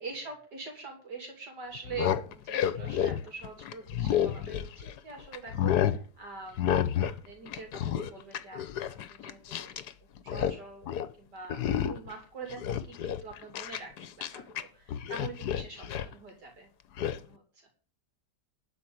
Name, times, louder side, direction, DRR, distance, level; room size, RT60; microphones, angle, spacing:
voice 1, 0.0-6.7 7.0-9.7 10.2-10.9 11.2-16.7 17.0-17.4, right 4 dB, 70° right, 2 dB, 3.3 m, -44 dB
sound 1, 1.8-5.0 5.3-6.0 6.6-7.2 7.5-9.9 10.2-10.6 10.9-11.1 11.5-12.1 12.5-14.6 14.9-16.1 17.0-17.2, left 10 dB, 70° left, 1.3 m, -30 dB
12.5 x 5.2 x 8.7 m, 0.38 s
omnidirectional pair, 1.8 m